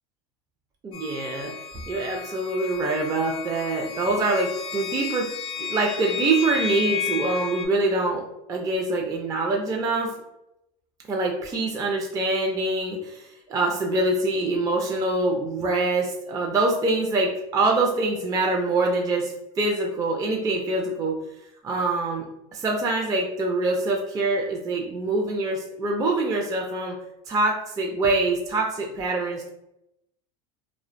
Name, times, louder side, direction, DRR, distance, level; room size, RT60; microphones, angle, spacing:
voice 1, 0.8-1.5 1.9-5.3 5.6-8.2 8.5-10.1 11.1-21.2 21.6-22.3 22.5-26.9 27.3-29.5, right 2 dB, 20° right, 0 dB, 0.3 m, -25 dB
FX Athenas Waveform, 0.9-7.7, left 8 dB, 85° left, 0.5 m, -33 dB
2.4 x 2.1 x 2.4 m, 0.85 s
supercardioid pair, 100°, 17 cm